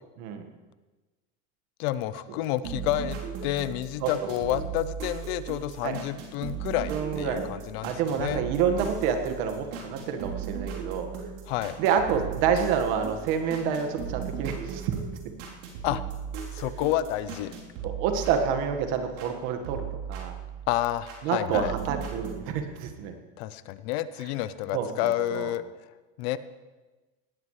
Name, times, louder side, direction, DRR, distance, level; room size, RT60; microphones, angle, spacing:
voice 1, 1.8-8.4 11.5-11.8 15.8-16.0 16.5-17.5 20.7-21.7 23.4-25.6 26.2-26.4, left 13 dB, 70° left, 15 dB, 0.8 m, -29 dB
sound 1, 2.6-19.3 19.6-21.2 21.5-22.4, right 7 dB, 80° right, 3.7 m, -37 dB
voice 2, 6.9-7.5 7.8-11.1 11.8-14.9 17.8-20.4 21.2-23.2 24.7-25.5, right 7 dB, 65° right, 6 dB, 1.7 m, -28 dB
19.0 x 13.0 x 3.3 m, 1.2 s
supercardioid pair, 135°, 32 cm